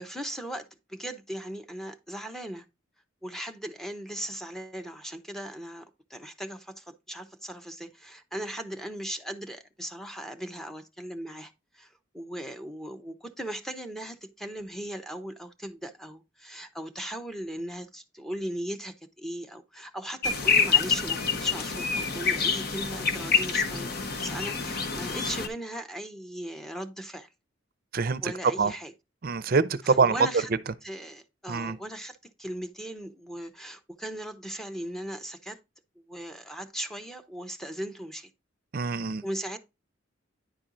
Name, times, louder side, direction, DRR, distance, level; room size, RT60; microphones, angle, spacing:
voice 1, 0.0-2.6 3.2-23.9 24.2-27.3 28.2-28.9 29.8-30.5 30.8-35.6 36.1-38.3 39.2-39.6, right 1 dB, ahead, 0.8 m, -38 dB
sound 1, 20.2-25.5, left 5 dB, 50° left, 1.1 m, -27 dB
voice 2, 27.9-28.7 29.2-30.3 31.5-31.8 38.7-39.2, right 4 dB, 50° right, 0.5 m, -25 dB
10.0 x 4.4 x 3.8 m
head